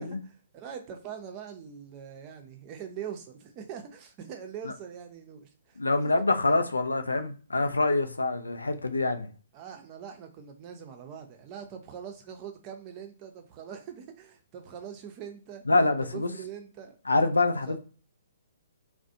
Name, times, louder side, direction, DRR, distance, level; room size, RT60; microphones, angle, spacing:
voice 1, 0.0-5.8 6.2-6.6 9.5-15.7 16.0-17.0 17.7-17.8, right 8 dB, 30° right, 0.5 m, -43 dB
voice 2, 5.8-9.3 15.7-16.3 17.1-17.8, left 2 dB, 85° left, 0.4 m, -25 dB
2.4 x 2.1 x 2.7 m
figure-of-eight pair, 125°, 0 cm